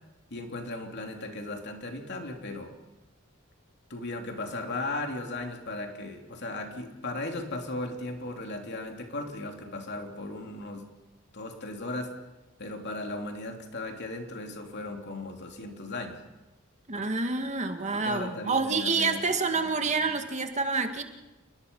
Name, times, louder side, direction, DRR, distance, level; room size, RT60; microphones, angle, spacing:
voice 1, 0.3-2.7 3.9-10.9 11.3-12.1 12.6-16.2 16.9-17.0 17.9-19.7, left 2 dB, 55° left, 3 dB, 3.2 m, -37 dB
voice 2, 16.9-21.0, right 4 dB, 35° right, 6 dB, 2.0 m, -28 dB
29.0 x 20.5 x 5.6 m, 1.1 s
head